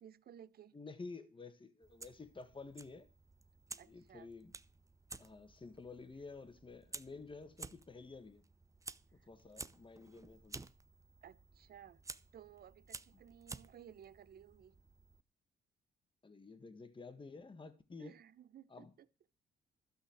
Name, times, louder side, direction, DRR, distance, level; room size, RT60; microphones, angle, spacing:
voice 1, 0.0-0.7 3.8-4.3 9.2-9.3 11.2-12.0 12.3-14.7 18.0-19.1, right 9 dB, 50° right, 0.7 m, -57 dB
voice 2, 0.7-3.1 3.7-4.5 5.2-8.4 9.3-10.6 16.2-18.2 18.7-18.9, left 4 dB, 25° left, 1.7 m, -51 dB
Fire, 1.8-15.2, right 3 dB, 15° right, 0.6 m, -53 dB
12.5 x 5.8 x 7.3 m
cardioid pair, 90°, 20 cm